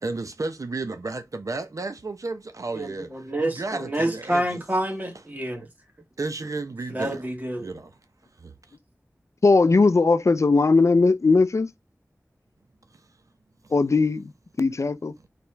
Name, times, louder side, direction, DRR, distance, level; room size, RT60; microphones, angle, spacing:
voice 1, 0.0-3.1 3.4-4.6 6.2-7.3 7.6-7.9 8.4-8.5, right 3 dB, 70° right, 0.7 m, -32 dB
voice 2, 2.7-5.7 6.9-7.7, right 1 dB, 30° right, 1.8 m, -28 dB
voice 3, 9.4-11.7 13.7-14.3 14.6-15.1, left 3 dB, 55° left, 0.4 m, -19 dB
4.2 x 3.0 x 3.3 m
wide cardioid pair, 45°, 6 cm